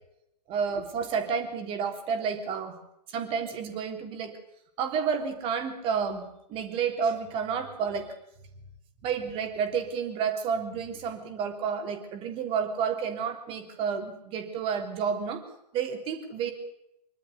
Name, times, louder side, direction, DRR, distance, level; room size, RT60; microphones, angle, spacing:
voice 1, 0.5-2.7 3.1-4.3 4.8-8.1 9.0-15.4 15.7-16.5, right 6 dB, 25° right, 6 dB, 3.4 m, -30 dB
25.5 x 12.5 x 9.8 m, 0.82 s
figure-of-eight pair, 120°, 21 cm